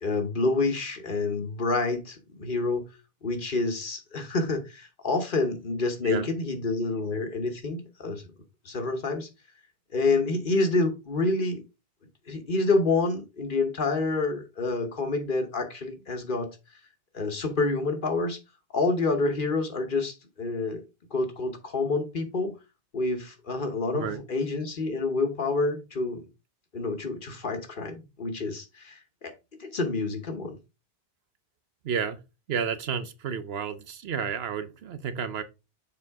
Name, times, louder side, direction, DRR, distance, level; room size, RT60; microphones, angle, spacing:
voice 1, 0.0-2.8 3.2-8.3 8.6-9.3 9.9-11.6 12.3-16.5 17.1-18.4 18.7-20.8 21.1-22.5 22.9-26.3 26.7-29.3 29.6-30.6, left 3 dB, 55° left, 1.3 m, -28 dB
voice 2, 31.8-32.2 32.5-35.4, right 7 dB, 80° right, 1.0 m, -31 dB
7.0 x 4.5 x 3.5 m
omnidirectional pair, 1.0 m